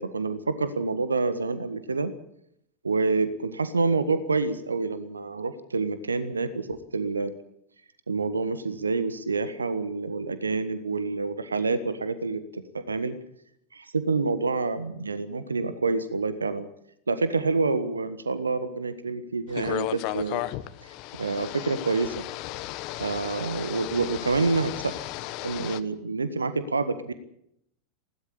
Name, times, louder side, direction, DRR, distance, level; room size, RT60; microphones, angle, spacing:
voice 1, 0.0-2.1 2.8-7.3 8.1-13.2 13.7-16.7 17.1-20.5 21.2-22.1 23.0-24.9 25.4-27.1, right 3 dB, 75° right, 12 dB, 1.6 m, -27 dB
sound 1, 19.5-25.8, left 17 dB, 40° left, 1.3 m, -35 dB
20.0 x 17.5 x 8.5 m, 0.76 s
figure-of-eight pair, 90°, 0 cm